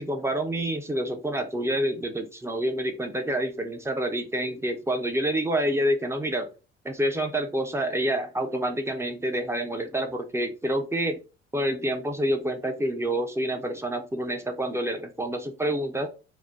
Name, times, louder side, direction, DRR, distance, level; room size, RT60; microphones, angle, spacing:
voice 1, 0.0-6.5 6.8-11.2 11.5-16.1, right 1 dB, 5° right, 5 dB, 0.7 m, -28 dB
4.2 x 2.2 x 3.4 m, 0.32 s
figure-of-eight pair, 50°, 38 cm